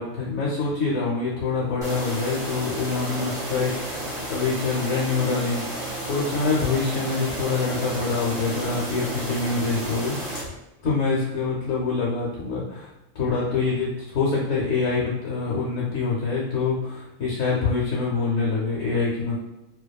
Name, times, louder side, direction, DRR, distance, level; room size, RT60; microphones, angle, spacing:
voice 1, 0.0-5.6 6.1-10.1 10.8-12.9 13.1-19.4, left 4 dB, 75° left, -5 dB, 0.9 m, -25 dB
sound 1, 1.8-10.4, right 1 dB, 5° right, 0.7 m, -32 dB
2.6 x 2.2 x 2.2 m, 0.95 s
omnidirectional pair, 1.4 m